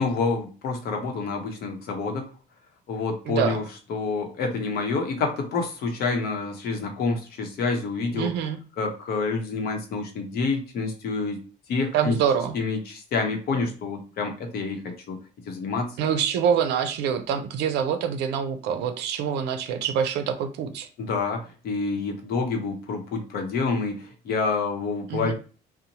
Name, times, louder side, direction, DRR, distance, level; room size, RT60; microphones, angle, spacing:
voice 1, 0.0-2.2 2.9-3.6 3.9-8.3 8.8-11.4 11.7-12.2 12.5-15.2 15.5-15.9 21.0-25.3, left 4 dB, 65° left, 3 dB, 0.8 m, -28 dB
voice 2, 3.3-3.6 8.1-8.6 11.9-12.5 16.0-20.9 25.1-25.3, right 8 dB, 85° right, 8 dB, 0.5 m, -25 dB
2.7 x 2.1 x 2.8 m, 0.36 s
cardioid pair, 110°, 17 cm